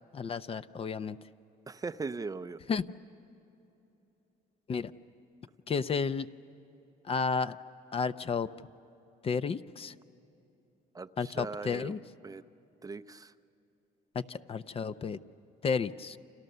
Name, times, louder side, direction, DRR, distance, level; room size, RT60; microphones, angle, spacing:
voice 1, 0.1-1.2 2.7-2.8 4.7-4.9 5.7-6.3 7.1-7.6 7.9-8.5 9.2-9.9 11.2-12.0 14.1-15.2 15.6-16.2, left 5 dB, 35° left, 12 dB, 0.6 m, -32 dB
voice 2, 1.7-2.6 10.9-11.9 12.2-12.4 12.8-13.3, right 4 dB, 20° right, 12 dB, 0.6 m, -39 dB
30.0 x 27.5 x 6.8 m, 3.0 s
cardioid pair, 110°, 17 cm